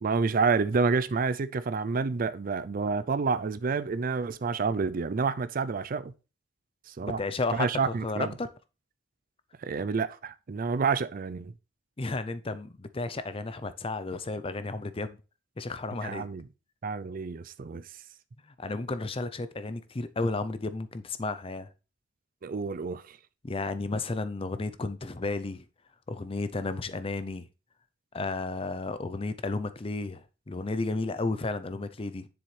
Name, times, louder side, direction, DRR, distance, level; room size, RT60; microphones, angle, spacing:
voice 1, 0.0-6.1 6.9-7.2 7.5-8.3 9.6-11.5 16.0-16.5 16.8-17.9 22.4-23.2, right 4 dB, 45° right, 0.4 m, -29 dB
voice 2, 7.0-8.5 12.0-15.2 15.6-16.3 18.6-21.7 23.4-25.6 26.1-27.4 28.1-32.3, left 3 dB, 30° left, 0.6 m, -33 dB
7.4 x 7.0 x 3.3 m
head